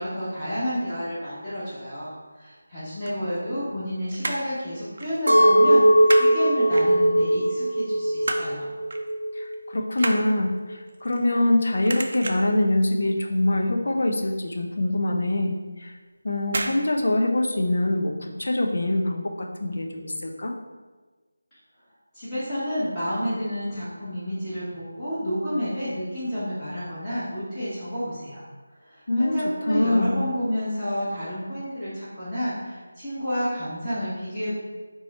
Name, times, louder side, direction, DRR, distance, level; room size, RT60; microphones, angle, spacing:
voice 1, 0.0-2.1 2.4-5.8 6.2-8.7 22.1-28.4 28.8-34.6, equal, 15° left, -15 dB, 1.3 m, -30 dB
sound 1, 2.8-3.8 4.1-4.6 5.0-5.2 5.4-6.3 6.7-7.3 7.7-8.6 8.9-9.1 9.4-11.6 11.8-12.6 13.0-13.4 13.6-13.7 14.1-14.2 14.6-14.7 15.6-15.8 16.5-16.8 17.1-17.2, right 2 dB, 50° right, 0.4 m, -32 dB
Chink clink, 5.3-9.6 10.0-10.6, right 1 dB, 85° right, 0.7 m, -20 dB
voice 2, 9.3-15.9 16.2-20.5 29.1-29.4 29.7-30.2, left 1 dB, 55° left, 2 dB, 0.6 m, -24 dB
4.1 x 2.3 x 4.2 m, 1.3 s
figure-of-eight pair, 160°, 0 cm